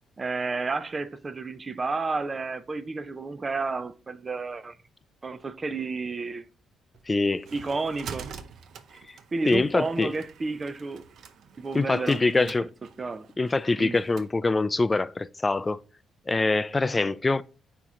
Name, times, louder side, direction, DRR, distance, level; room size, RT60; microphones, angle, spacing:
voice 1, 0.2-4.8 5.2-6.4 7.5-8.3 9.3-11.1 11.6-12.5 13.0-13.3 13.8-14.0, right 3 dB, 30° right, 0.6 m, -31 dB
sound 1, 6.9-14.3, right 6 dB, 70° right, 0.7 m, -46 dB
voice 2, 7.1-7.5 9.5-10.1 11.7-12.7 13.4-15.8 16.3-17.4, left 3 dB, 25° left, 0.3 m, -24 dB
9.0 x 3.0 x 3.7 m
cardioid pair, 90°, 0 cm